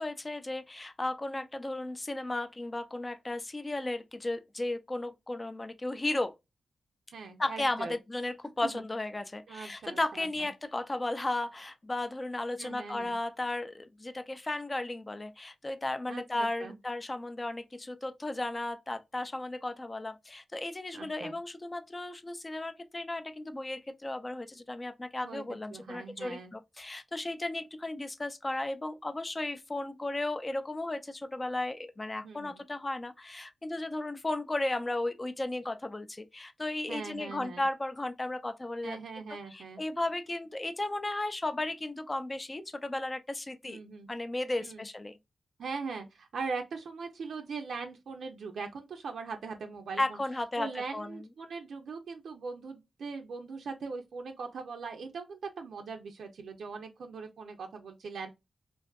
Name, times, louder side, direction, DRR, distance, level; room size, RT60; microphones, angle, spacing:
voice 1, 0.0-6.3 7.4-39.0 39.3-43.8 44.1-45.2 50.0-51.1, left 2 dB, 25° left, 0.3 m, -35 dB
voice 2, 7.1-8.0 8.6-8.8 9.5-10.5 12.6-13.1 16.1-16.8 20.9-21.4 25.2-25.4 25.7-26.5 32.2-32.6 36.9-37.6 38.8-39.8 43.7-44.1 44.6-44.9 45.6-50.2 50.6-58.3, right 4 dB, 85° right, 0.4 m, -40 dB
2.5 x 2.4 x 2.2 m
cardioid pair, 75°, 0 cm